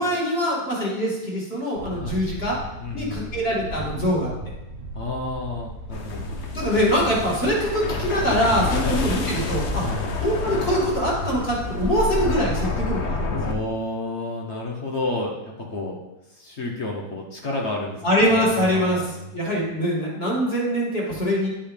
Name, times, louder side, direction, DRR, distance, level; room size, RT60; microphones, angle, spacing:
voice 1, 0.0-2.6 2.9-4.3 6.5-9.8 10.2-13.4 18.0-19.0 19.3-21.5, equal, 30° left, -5 dB, 2.4 m, -23 dB
Wind, 1.7-13.1, right 2 dB, 60° right, 0.7 m, -35 dB
voice 2, 2.8-3.3 4.9-6.2 8.8-9.0 9.8-10.1 13.3-16.0 16.4-18.1 18.4-19.3, left 2 dB, 45° left, 0 dB, 0.9 m, -31 dB
sound 1, 5.9-13.5, left 4 dB, 85° left, 0.6 m, -29 dB
10.5 x 5.6 x 3.3 m, 1.0 s
omnidirectional pair, 2.2 m